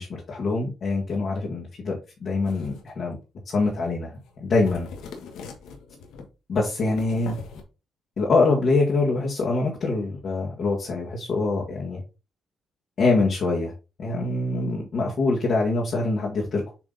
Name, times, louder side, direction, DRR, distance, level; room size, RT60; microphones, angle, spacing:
voice 1, 0.0-3.2 3.5-4.9 6.5-7.4 8.2-12.0 13.0-13.7 14.0-16.6, left 3 dB, 55° left, -3 dB, 1.8 m, -24 dB
sound 1, 2.4-2.9 3.6-4.0 4.2-4.4 4.6-6.3 6.8-7.6, left 5 dB, 85° left, 1.3 m, -41 dB
7.2 x 3.5 x 4.0 m, 0.30 s
cardioid pair, 90°, 0 cm